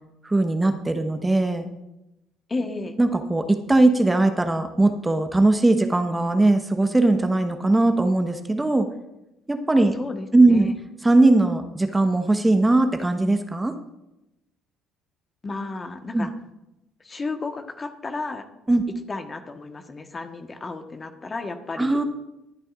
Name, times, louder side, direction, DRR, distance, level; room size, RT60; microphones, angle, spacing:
voice 1, 0.2-1.7 3.0-8.9 9.5-9.9 10.3-10.7 11.0-13.7 16.1-16.3 18.7-18.8 21.8-22.0, right 2 dB, 15° right, 7 dB, 1.2 m, -19 dB
voice 2, 2.5-3.0 9.9-10.7 15.4-16.3 17.0-18.4 19.1-22.0, left 3 dB, 30° left, 6 dB, 1.3 m, -33 dB
23.5 x 8.9 x 2.5 m, 0.91 s
hypercardioid pair, 55°, 0 cm